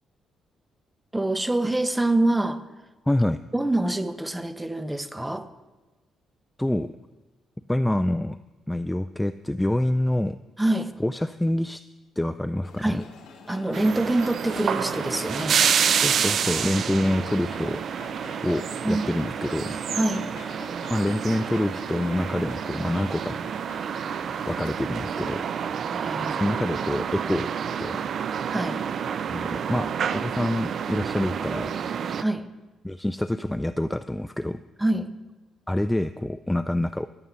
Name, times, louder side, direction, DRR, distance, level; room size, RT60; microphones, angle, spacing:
voice 1, 1.1-2.6 3.5-5.5 10.6-10.9 12.8-13.1 13.5-15.6 18.8-19.1 19.9-20.3 25.9-26.4 28.5-28.8 32.2-32.5 34.8-35.1, right 1 dB, 10° right, 12 dB, 0.7 m, -25 dB
voice 2, 3.1-3.4 6.6-6.9 7.7-8.4 8.7-10.4 11.0-11.8 12.2-13.0 16.0-17.8 18.4-19.8 20.9-23.4 24.5-25.4 26.3-27.5 27.8-28.0 29.3-31.8 32.8-34.6 35.7-37.1, left 1 dB, 10° left, 12 dB, 0.3 m, -26 dB
sound 1, 12.6-25.7, left 5 dB, 85° left, 1.9 m, -45 dB
sound 2, 13.7-32.2, right 7 dB, 60° right, 0.4 m, -28 dB
14.5 x 10.5 x 4.0 m, 1.2 s
cardioid pair, 90°, 0 cm